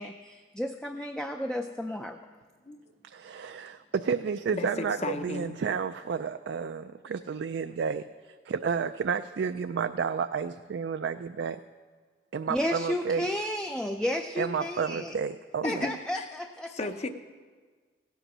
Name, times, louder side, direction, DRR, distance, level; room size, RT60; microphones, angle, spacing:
voice 1, 0.0-2.2 12.5-15.1 15.6-16.7, left 1 dB, 5° left, 5 dB, 0.3 m, -32 dB
voice 2, 3.1-8.0 8.5-11.6 12.3-13.2 14.4-15.8, right 6 dB, 70° right, 9 dB, 0.3 m, -31 dB
voice 3, 4.5-5.6 15.6-16.3 16.7-17.1, left 2 dB, 35° left, 8 dB, 0.7 m, -34 dB
16.5 x 8.0 x 6.1 m, 1.5 s
head